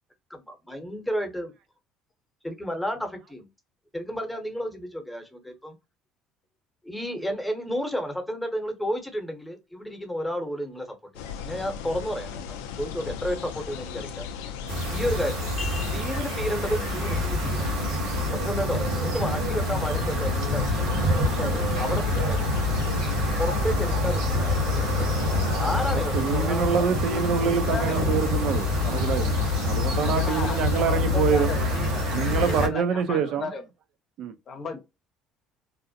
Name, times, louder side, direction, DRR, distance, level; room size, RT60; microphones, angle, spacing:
voice 1, 0.3-1.5 2.4-3.5 3.9-5.8 6.8-14.2 14.9-15.4 15.9-17.7 18.4-20.9 21.3-22.5 23.4-25.1 25.6-27.3 28.9-29.0 34.7-34.8, equal, 5° left, 0.8 m, -32 dB
sound 1, 11.1-30.9, left 6 dB, 90° left, 0.3 m, -37 dB
sound 2, 14.7-32.7, left 1 dB, 85° right, 1.3 m, -26 dB
voice 2, 15.6-16.0 27.4-28.2 30.0-33.6 34.5-34.8, left 4 dB, 50° left, 0.7 m, -35 dB
voice 3, 25.7-31.5 32.1-33.6 34.2-34.3, right 7 dB, 65° right, 0.4 m, -26 dB
2.6 x 2.1 x 2.6 m
supercardioid pair, 80°, 0 cm